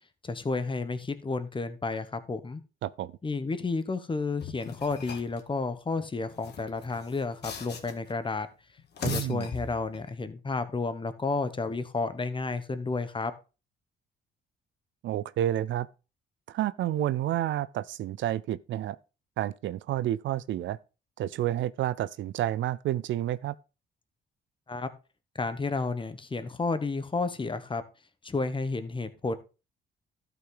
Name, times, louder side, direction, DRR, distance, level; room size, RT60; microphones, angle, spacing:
voice 1, 0.2-2.6 3.2-8.5 9.0-13.3 24.7-24.9 25.4-27.8 28.2-29.4, left 3 dB, 25° left, 1.2 m, -31 dB
voice 2, 2.8-3.1 9.0-9.5 15.0-15.9 16.5-19.0 19.4-20.8 21.2-23.5, right 12 dB, 75° right, 0.5 m, -30 dB
sound 1, 4.4-5.4 6.3-8.1 8.8-10.1, left 6 dB, 55° left, 1.8 m, -40 dB
12.5 x 5.9 x 3.9 m
cardioid pair, 90°, 20 cm